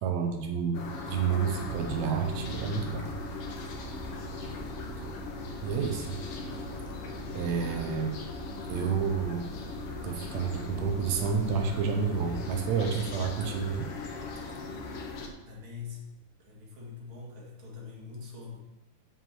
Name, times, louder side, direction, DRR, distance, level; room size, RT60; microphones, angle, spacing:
voice 1, 0.0-3.1 5.6-6.2 7.3-8.2 8.7-9.5 10.0-13.9, right 6 dB, 85° right, 3 dB, 1.5 m, -30 dB
sound 1, 0.7-15.3, left 3 dB, 80° left, 1.3 m, -39 dB
sound 2, 1.6-16.1, right 3 dB, 65° right, 2.2 m, -44 dB
voice 2, 15.5-16.1 16.5-18.6, left 5 dB, 40° right, -3 dB, 2.4 m, -43 dB
8.5 x 5.0 x 7.4 m, 0.98 s
omnidirectional pair, 4.3 m